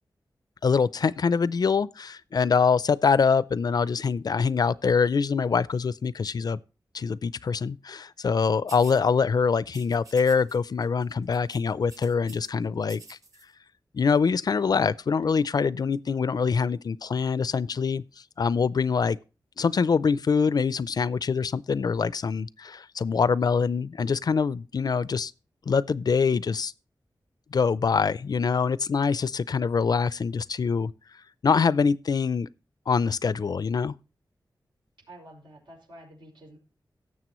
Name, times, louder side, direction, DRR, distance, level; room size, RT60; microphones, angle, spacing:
voice 1, 0.6-6.6 6.9-13.2 13.9-18.0 18.4-19.2 19.6-25.3 25.7-26.7 27.5-30.9 31.4-32.5 32.9-33.9, left 5 dB, 55° left, 0.4 m, -24 dB
sound 1, 8.7-9.0 9.7-10.6 10.8-11.0 11.3-12.5 12.8-13.4, right 3 dB, 45° right, 2.2 m, -49 dB
voice 2, 35.1-36.6, right 1 dB, 85° right, 5.8 m, -49 dB
17.5 x 7.3 x 3.0 m
wide cardioid pair, 110°, 8 cm